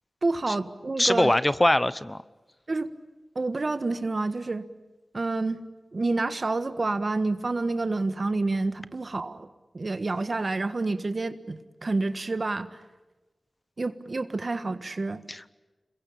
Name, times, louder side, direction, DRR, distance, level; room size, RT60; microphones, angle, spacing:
voice 1, 0.2-1.3 2.7-2.9 3.3-4.6 5.1-5.6 5.9-9.5 9.7-12.8 13.8-15.2, right 3 dB, 50° right, 11 dB, 1.4 m, -28 dB
voice 2, 1.0-2.2 15.3-15.5, left 1 dB, 20° left, 16 dB, 0.9 m, -22 dB
27.0 x 22.0 x 8.7 m, 1.2 s
wide cardioid pair, 55°, 0 cm